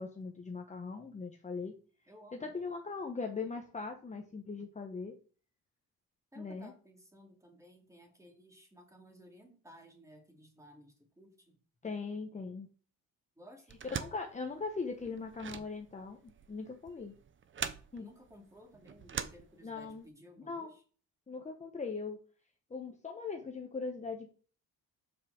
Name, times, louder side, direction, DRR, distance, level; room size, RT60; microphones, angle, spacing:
voice 1, 0.0-1.7 2.3-5.1 6.4-6.7 11.8-12.7 14.0-17.2 17.9-18.1 19.6-20.0 20.4-20.7 21.3-22.2 22.7-24.3, left 4 dB, 20° left, 3 dB, 1.0 m, -40 dB
voice 2, 2.1-2.5 6.3-11.6 13.4-13.8 18.0-20.8, equal, 10° right, 2 dB, 2.4 m, -57 dB
sound 1, 13.7-20.0, right 7 dB, 35° right, 0.8 m, -43 dB
7.4 x 5.6 x 6.2 m, 0.40 s
cardioid pair, 140°, 35 cm